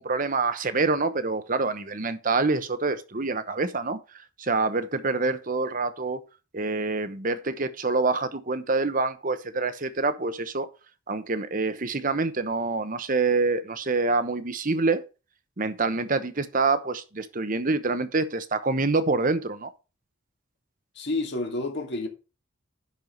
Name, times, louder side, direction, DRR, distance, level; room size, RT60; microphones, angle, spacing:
voice 1, 0.0-4.0 4.4-6.2 6.5-10.7 11.1-15.0 15.6-19.7, right 3 dB, 40° right, 1.0 m, -26 dB
voice 2, 21.0-22.1, left 2 dB, 55° left, 2.0 m, -29 dB
11.0 x 4.8 x 5.3 m
head